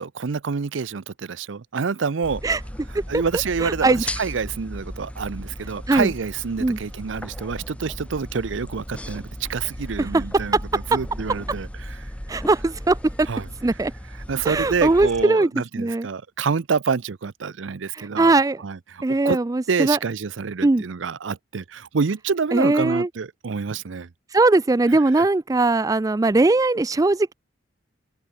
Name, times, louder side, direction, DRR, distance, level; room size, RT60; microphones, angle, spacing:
voice 1, 0.0-2.4 3.1-12.1 13.3-13.5 14.3-18.3 18.6-19.4 19.7-24.1 25.2-25.3, right 5 dB, 80° right, 0.6 m, -27 dB
sound 1, 2.2-15.3, equal, 5° left, 1.2 m, -36 dB
voice 2, 3.6-4.0 5.9-6.1 6.6-6.8 10.0-10.2 10.5-10.6 12.3-13.3 13.6-13.9 14.4-15.5 15.8-16.1 17.9-18.6 19.0-20.0 20.6-20.8 22.5-23.1 24.3-27.3, right 2 dB, 20° right, 0.4 m, -20 dB
open air
head